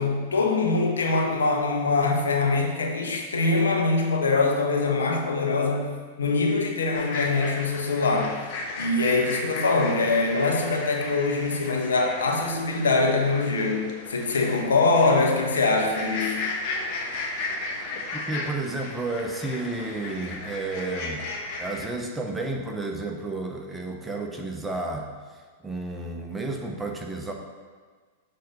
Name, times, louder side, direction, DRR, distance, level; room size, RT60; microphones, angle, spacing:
voice 1, 0.0-8.4 8.8-16.5, left 3 dB, 85° left, 1 dB, 1.1 m, -23 dB
sound 1, 6.9-21.9, left 3 dB, 50° left, 1.2 m, -35 dB
voice 2, 18.1-21.2 21.6-25.1 25.6-27.3, right 2 dB, 10° right, 1 dB, 0.9 m, -31 dB
6.6 x 3.9 x 5.3 m, 1.5 s
hypercardioid pair, 105°, 0 cm